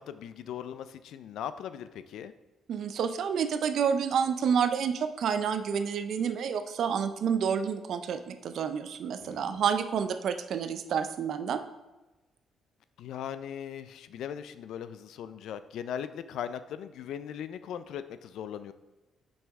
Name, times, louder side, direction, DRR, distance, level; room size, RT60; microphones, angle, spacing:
voice 1, 0.0-2.3 9.2-9.6 13.0-18.7, left 9 dB, 65° left, 12 dB, 0.3 m, -39 dB
voice 2, 2.7-11.6, right 7 dB, 50° right, 9 dB, 0.4 m, -29 dB
6.0 x 5.5 x 3.5 m, 1.1 s
cardioid pair, 175°, 0 cm